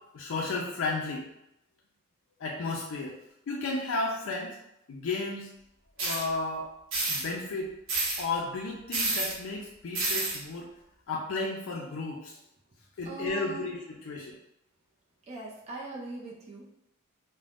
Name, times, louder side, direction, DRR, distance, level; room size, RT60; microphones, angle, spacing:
voice 1, 0.1-1.3 2.4-3.1 3.5-4.5 4.9-5.5 6.0-6.7 7.1-7.7 8.2-10.7 11.1-12.3 13.0-13.8 14.1-14.4, left 3 dB, 65° left, -2 dB, 0.4 m, -33 dB
sound 1, 6.0-6.2 6.9-7.2 7.9-8.2 8.9-9.3 9.9-10.4, right 2 dB, 60° right, 0.8 m, -29 dB
voice 2, 13.0-13.7 15.3-16.7, right 2 dB, 30° right, -3 dB, 0.4 m, -40 dB
3.3 x 2.0 x 2.4 m, 0.85 s
head